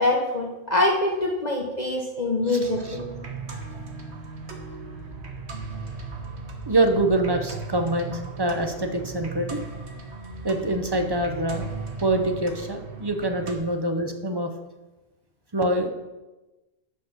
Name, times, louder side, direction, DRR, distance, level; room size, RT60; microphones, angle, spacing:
voice 1, 0.0-3.0, left 2 dB, 35° left, -1 dB, 0.9 m, -24 dB
voice 2, 2.5-3.0 6.7-9.6 10.4-11.7 12.0-14.5 15.5-15.9, right 1 dB, 25° right, 5 dB, 0.6 m, -25 dB
sound 1, 2.6-13.5, right 4 dB, 55° right, 1.3 m, -37 dB
7.9 x 5.8 x 5.8 m, 1.1 s
omnidirectional pair, 1.3 m